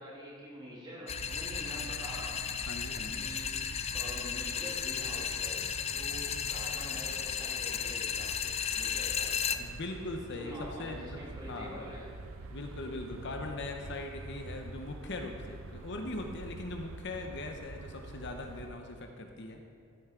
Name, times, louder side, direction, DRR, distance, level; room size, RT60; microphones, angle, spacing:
voice 1, 0.0-2.4 3.2-3.6 3.9-9.7 10.3-12.2, equal, 20° right, -5 dB, 2.4 m, -46 dB
sound 1, 1.1-9.6, left 8 dB, 30° left, 0.3 m, -35 dB
sound 2, 1.1-18.7, right 3 dB, 65° right, 0.5 m, -46 dB
voice 2, 2.7-3.3 9.6-11.2 11.5-11.8 12.5-19.6, left 2 dB, 50° left, 3 dB, 0.8 m, -40 dB
15.5 x 7.9 x 3.7 m, 2.4 s
head